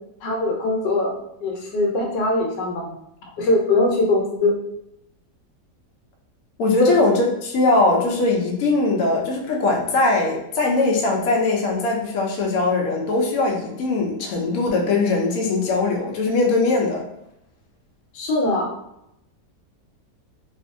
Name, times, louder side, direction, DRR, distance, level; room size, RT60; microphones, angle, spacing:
voice 1, 0.2-1.1 1.4-2.9 3.4-4.5 6.8-7.0 18.1-18.7, left 2 dB, 85° left, 0 dB, 1.3 m, -21 dB
voice 2, 6.6-17.0, left 3 dB, 65° left, 0 dB, 0.9 m, -20 dB
2.6 x 2.5 x 2.5 m, 0.81 s
omnidirectional pair, 1.9 m